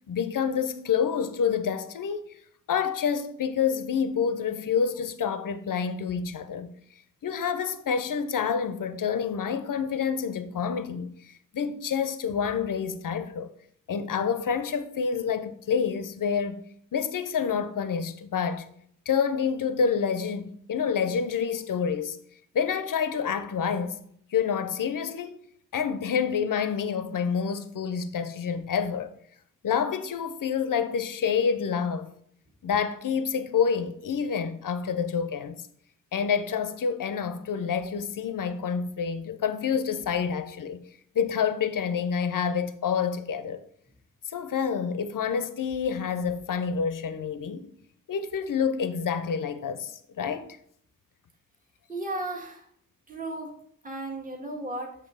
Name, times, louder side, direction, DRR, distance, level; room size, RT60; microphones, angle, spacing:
voice 1, 0.1-2.4 2.7-6.7 7.2-13.5 13.9-16.7 16.9-18.7 19.1-22.2 22.5-24.0 24.3-25.4 25.7-29.1 29.6-32.1 32.6-35.6 36.1-40.8 41.1-43.6 44.3-47.7 48.1-50.5, left 6 dB, 70° left, 0.6 m, -28 dB
voice 2, 51.9-52.7 53.1-53.5 53.8-54.9, right 2 dB, 25° right, 1.3 m, -34 dB
7.2 x 3.5 x 5.5 m
wide cardioid pair, 75°, 34 cm